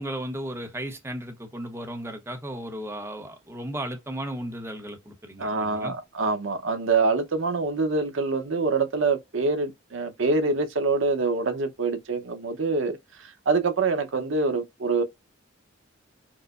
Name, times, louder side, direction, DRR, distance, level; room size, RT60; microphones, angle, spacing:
voice 1, 0.0-5.9, right 1 dB, 15° right, 0.8 m, -35 dB
voice 2, 5.4-15.0, right 3 dB, 75° right, 0.7 m, -25 dB
4.7 x 2.0 x 2.4 m
head